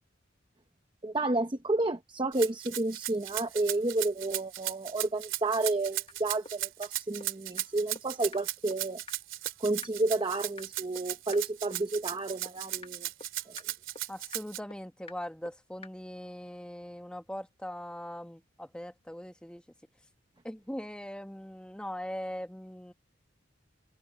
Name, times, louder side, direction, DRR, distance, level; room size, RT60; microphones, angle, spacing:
voice 1, 1.0-9.0 9.6-13.1 13.5-13.6, right 2 dB, 25° right, 0.8 m, -31 dB
Rattle (instrument), 2.3-14.6, right 14 dB, 80° right, 2.7 m, -36 dB
sound 1, 6.1-6.2 6.5-6.6 6.8-6.9 7.2-7.3 7.6-7.7 8.0-8.1 8.3-8.4 8.7-8.8 9.1-9.2 9.5-9.6 9.8-9.9 10.2-10.3 10.6-10.7 11.0-11.1 11.3-11.4 11.7-11.8 12.1-12.2 12.5-12.6 12.8-12.9 13.2-13.3 13.6-13.7 14.0-14.1 14.3-14.4 14.7-14.8 15.1-15.2 15.5-15.6 15.8-15.9, left 3 dB, 30° left, 1.2 m, -45 dB
voice 2, 14.1-19.6 20.4-22.9, equal, 5° left, 1.1 m, -41 dB
head